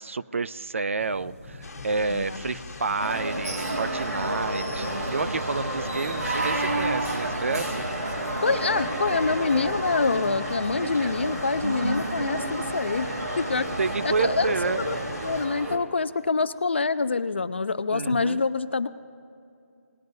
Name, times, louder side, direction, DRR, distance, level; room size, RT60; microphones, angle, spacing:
voice 1, 0.0-7.8 13.8-14.8 17.9-18.4, right 4 dB, 55° right, 14 dB, 0.4 m, -29 dB
sound 1, 1.0-9.1, left 1 dB, 5° left, 0.7 m, -46 dB
sound 2, 1.6-15.5, left 4 dB, 75° left, 1.2 m, -42 dB
sound 3, 3.0-15.8, right 1 dB, 85° right, 2.2 m, -30 dB
voice 2, 8.4-13.1 13.4-13.7 14.0-15.0 15.2-18.9, left 4 dB, 45° left, 13 dB, 0.5 m, -26 dB
19.5 x 10.5 x 2.7 m, 2.5 s
hypercardioid pair, 175°, 8 cm